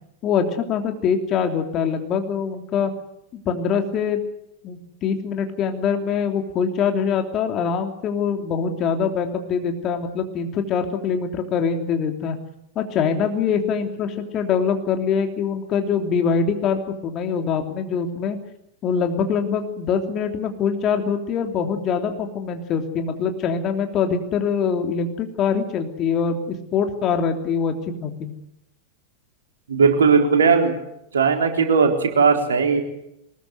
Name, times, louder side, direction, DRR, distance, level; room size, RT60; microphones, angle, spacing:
voice 1, 0.2-2.9 3.4-4.2 4.6-12.4 12.7-18.4 18.8-27.7 28.0-28.3, left 6 dB, 35° left, 5 dB, 3.2 m, -23 dB
voice 2, 29.7-30.7 31.1-32.8, right 5 dB, 65° right, 4 dB, 3.9 m, -17 dB
23.0 x 20.5 x 8.1 m, 0.82 s
figure-of-eight pair, 90°, 0 cm